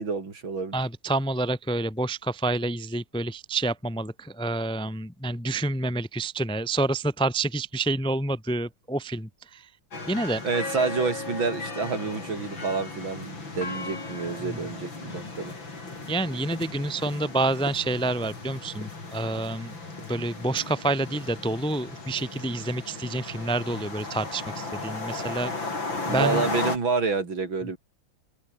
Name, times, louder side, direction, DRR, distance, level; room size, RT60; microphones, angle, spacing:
voice 1, 0.0-0.8 10.4-15.5 26.0-27.8, right 4 dB, 70° right, 4.4 m, -28 dB
voice 2, 0.7-9.6 10.1-10.4 14.4-14.6 16.1-19.7 20.1-25.5 26.1-26.4, right 2 dB, 5° left, 0.9 m, -28 dB
sound 1, 9.9-26.8, left 3 dB, 70° left, 6.2 m, -36 dB
omnidirectional pair, 2.2 m